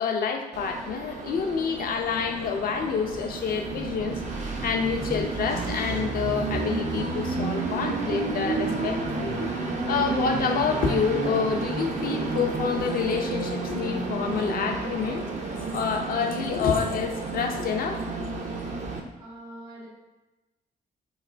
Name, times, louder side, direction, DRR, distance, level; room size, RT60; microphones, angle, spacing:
voice 1, 0.0-18.4, left 6 dB, 45° left, 4 dB, 0.4 m, -28 dB
Train, 0.5-19.0, right 3 dB, 35° right, 0.5 m, -31 dB
voice 2, 19.2-19.9, right 1 dB, 85° right, -9 dB, 1.0 m, -43 dB
3.0 x 2.1 x 2.5 m, 1.1 s
figure-of-eight pair, 40°, 21 cm